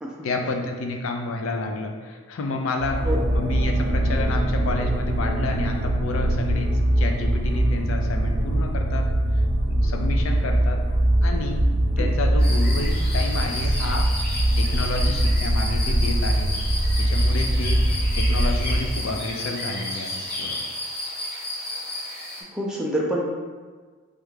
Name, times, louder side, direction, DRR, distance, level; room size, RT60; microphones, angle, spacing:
voice 1, 0.2-6.7 7.0-9.1 9.7-10.8 11.2-14.1 14.6-16.5 17.1-17.8 18.2-20.6, left 2 dB, 75° left, 3 dB, 0.4 m, -30 dB
sound 1, 2.8-19.0, right 1 dB, 90° right, 0.7 m, -22 dB
sound 2, 12.4-22.4, left 1 dB, 50° left, 0.8 m, -32 dB
voice 2, 22.5-23.2, right 1 dB, 5° right, -3 dB, 0.4 m, -26 dB
3.2 x 2.4 x 3.2 m, 1.5 s
head